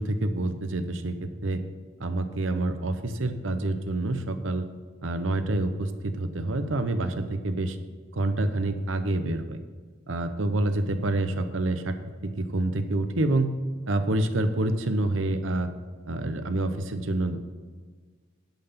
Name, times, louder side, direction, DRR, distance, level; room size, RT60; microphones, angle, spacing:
voice 1, 0.0-1.6 2.0-4.6 5.0-7.8 8.1-9.6 10.1-11.9 12.2-13.5 13.9-15.7 16.1-17.4, right 2 dB, 90° right, 9 dB, 0.9 m, -27 dB
10.5 x 5.7 x 5.8 m, 1.5 s
head